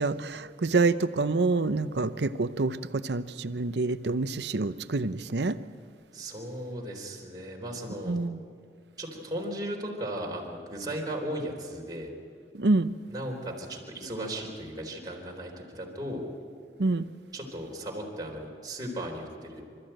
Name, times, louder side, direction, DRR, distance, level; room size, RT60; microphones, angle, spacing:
voice 1, 0.0-5.6 8.1-8.4 12.5-12.9 16.8-17.1, right 3 dB, 75° right, 12 dB, 0.7 m, -27 dB
voice 2, 6.1-8.1 9.0-12.1 13.1-16.2 17.3-19.6, right 1 dB, 25° right, -1 dB, 3.8 m, -36 dB
28.0 x 13.5 x 9.0 m, 2.3 s
head